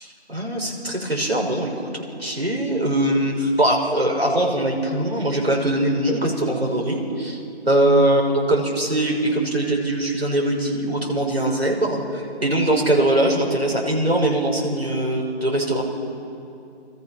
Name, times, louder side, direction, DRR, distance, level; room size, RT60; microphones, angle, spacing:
voice 1, 0.3-7.4 7.6-15.8, right 1 dB, 60° right, -1 dB, 6.3 m, -21 dB
29.5 x 24.5 x 5.9 m, 2.6 s
figure-of-eight pair, 175°, 34 cm